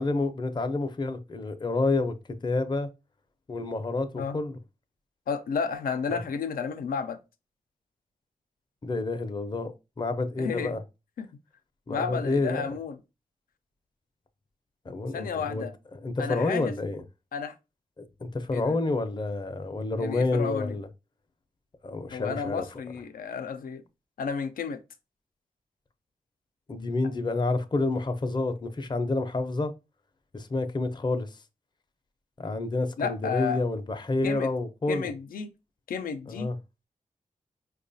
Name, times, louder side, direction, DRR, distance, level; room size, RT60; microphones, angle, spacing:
voice 1, 0.0-2.1 2.4-2.9 3.5-4.6 6.1-6.2 8.8-10.8 11.9-12.7 14.9-15.7 15.9-17.0 18.0-20.9 21.8-22.6 26.7-29.7 30.3-31.4 32.4-35.1 36.3-36.6, left 2 dB, 30° left, 0.5 m, -29 dB
voice 2, 5.3-7.2 10.4-10.8 11.2-11.3 11.9-13.0 15.1-15.7 16.2-16.7 17.3-17.5 18.5-18.8 20.0-20.8 22.1-23.8 24.2-24.8 33.0-33.6 34.2-34.5 34.9-35.5 35.9-36.5, left 6 dB, 90° left, 0.5 m, -32 dB
4.7 x 2.3 x 2.6 m
cardioid pair, 55°, 14 cm